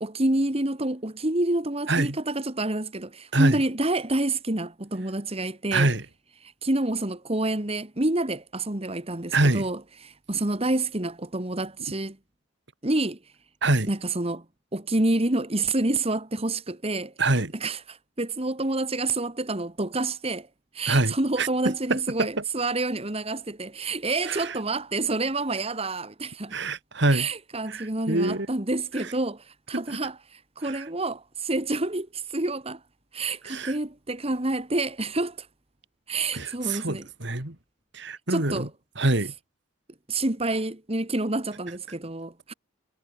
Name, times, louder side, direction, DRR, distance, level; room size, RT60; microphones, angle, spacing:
voice 1, 0.0-5.9 6.4-12.2 12.8-13.2 13.9-14.5 14.7-17.1 17.6-20.5 20.7-26.6 27.1-32.8 33.1-35.5 36.1-37.1 38.3-38.7 40.1-42.5, right 2 dB, 30° right, 1.9 m, -28 dB
voice 2, 5.7-6.0 9.3-9.7 13.6-13.9 17.2-17.5 20.9-21.5 21.9-22.4 24.3-24.6 26.5-27.3 27.7-28.5 29.0-29.1 29.7-30.0 30.6-30.8 33.5-33.7 36.3-37.6 37.9-38.7 39.0-39.3, right 2 dB, 60° right, 2.9 m, -25 dB
head